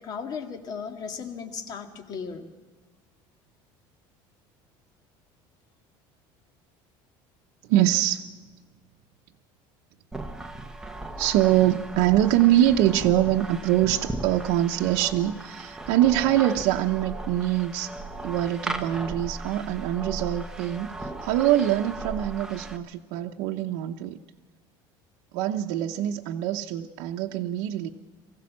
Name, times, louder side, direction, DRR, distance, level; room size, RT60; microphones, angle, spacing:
voice 1, 0.0-2.5, left 6 dB, 40° left, 5 dB, 2.1 m, -36 dB
voice 2, 7.7-8.3 11.2-17.9 18.2-24.2 25.3-27.9, right 13 dB, 75° right, 2 dB, 0.9 m, -24 dB
sound 1, 10.1-22.8, right 2 dB, 5° right, 1.1 m, -37 dB
23.0 x 15.5 x 7.4 m, 1.3 s
cardioid pair, 150°, 10 cm